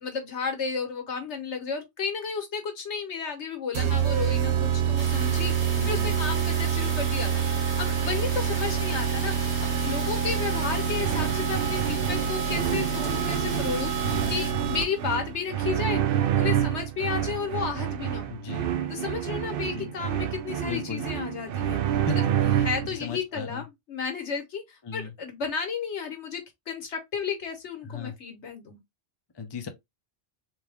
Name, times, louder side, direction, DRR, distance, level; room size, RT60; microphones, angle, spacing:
voice 1, 0.0-5.5 5.9-13.9 14.3-18.3 18.9-21.8 22.1-22.2 22.6-28.8, left 6 dB, 85° left, 1.4 m, -33 dB
sound 1, 3.7-15.1, right 8 dB, 80° right, 1.1 m, -27 dB
sound 2, 5.0-14.5, right 1 dB, 30° right, 1.7 m, -37 dB
voice 2, 5.8-6.2 14.0-14.4 18.3-18.7 19.7-19.9 20.6-21.0 22.1-23.6 24.8-25.1 27.8-28.1 29.3-29.7, left 5 dB, 30° left, 0.6 m, -36 dB
sound 3, 11.0-23.0, right 10 dB, 65° right, 0.7 m, -28 dB
3.6 x 3.0 x 3.4 m
omnidirectional pair, 1.1 m